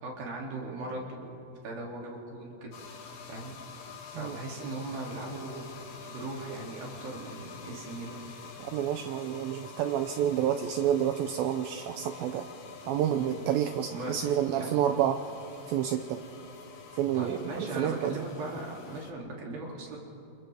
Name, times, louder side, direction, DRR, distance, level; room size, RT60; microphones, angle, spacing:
voice 1, 0.0-1.4 1.6-2.7 3.3-3.5 4.1-8.2 13.1-13.5 13.9-14.8 17.1-20.0, right 2 dB, 60° right, -2 dB, 4.3 m, -39 dB
sound 1, 2.7-19.1, left 5 dB, 60° left, 2.4 m, -47 dB
voice 2, 8.6-12.5 12.9-15.2 15.7-16.2 16.9-18.1, right 10 dB, 90° right, 7 dB, 2.0 m, -29 dB
28.0 x 27.5 x 3.5 m, 2.9 s
omnidirectional pair, 5.0 m